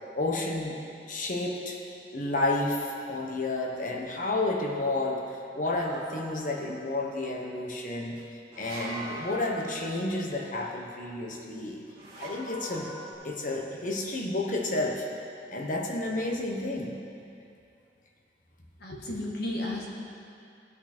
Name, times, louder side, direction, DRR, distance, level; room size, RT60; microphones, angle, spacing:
voice 1, 0.2-0.8 1.1-1.8 2.1-8.2 8.6-11.8 12.2-12.9 13.2-15.0 15.5-17.0, left 2 dB, 45° left, 0 dB, 1.1 m, -31 dB
Small poofs of flux, 5.6-6.9 8.5-10.4 11.9-13.1, right 1 dB, 25° right, 2.3 m, -41 dB
voice 2, 18.8-19.9, left 1 dB, 60° left, -2 dB, 1.6 m, -33 dB
16.0 x 6.1 x 4.4 m, 2.5 s
head